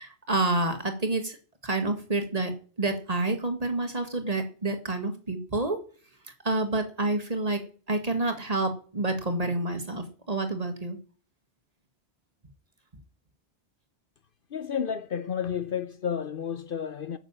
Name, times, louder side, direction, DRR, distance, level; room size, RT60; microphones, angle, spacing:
voice 1, 0.0-1.4 1.6-5.8 6.4-7.6 7.9-11.0, right 2 dB, 35° right, 1.8 m, -28 dB
voice 2, 14.5-17.2, left 7 dB, 55° left, 0.8 m, -31 dB
9.2 x 6.9 x 8.8 m
omnidirectional pair, 1.2 m